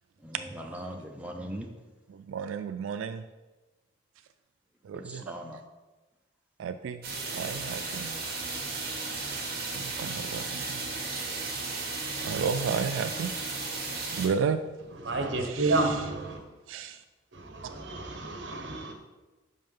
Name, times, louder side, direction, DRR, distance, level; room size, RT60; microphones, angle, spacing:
voice 1, 0.2-1.7 4.9-5.6, equal, 5° right, 0.6 m, -40 dB
voice 2, 2.1-3.2 4.8-5.3 6.6-8.2 9.8-10.8 12.2-13.3 14.1-14.6 15.4-16.0 16.7-17.0, right 6 dB, 85° right, 0.3 m, -33 dB
sound 1, 7.0-14.3, right 3 dB, 50° right, 1.5 m, -34 dB
voice 3, 15.0-16.4 17.3-18.9, right 2 dB, 65° right, 1.1 m, -30 dB
5.5 x 5.5 x 5.5 m
head